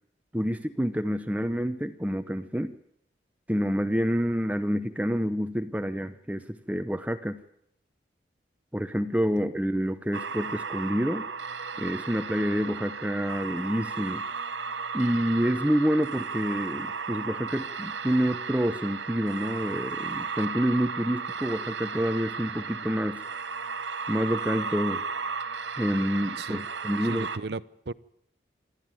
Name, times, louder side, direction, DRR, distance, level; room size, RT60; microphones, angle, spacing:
voice 1, 0.3-2.7 3.5-7.4 8.7-11.3 11.8-14.2 14.9-23.2 24.1-25.0 25.8-27.3, equal, 10° right, 9 dB, 0.8 m, -28 dB
sound 1, 10.1-27.4, right 5 dB, 90° right, 1.1 m, -35 dB
voice 2, 27.0-27.9, right 3 dB, 65° right, 17 dB, 0.7 m, -36 dB
27.0 x 12.5 x 9.3 m, 0.73 s
head